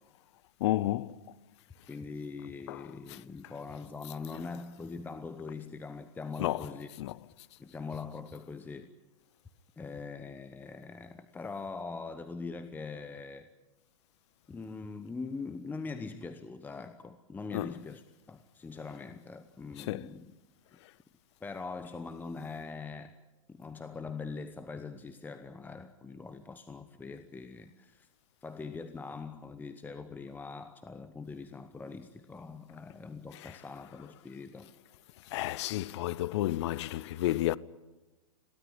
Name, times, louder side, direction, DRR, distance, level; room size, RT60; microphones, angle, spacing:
voice 1, 0.6-1.3 2.7-3.2 6.4-6.7 7.0-7.2 17.5-17.7 19.8-20.1 20.8-20.9 33.3-33.6 35.2-37.6, left 15 dB, 55° left, 0.7 m, -32 dB
voice 2, 1.9-6.9 7.6-8.9 9.8-13.5 14.5-18.0 18.3-20.3 21.4-23.2 23.5-28.1 28.4-34.7, left 4 dB, 10° left, 0.9 m, -42 dB
22.0 x 17.0 x 9.7 m
hypercardioid pair, 120°, 18 cm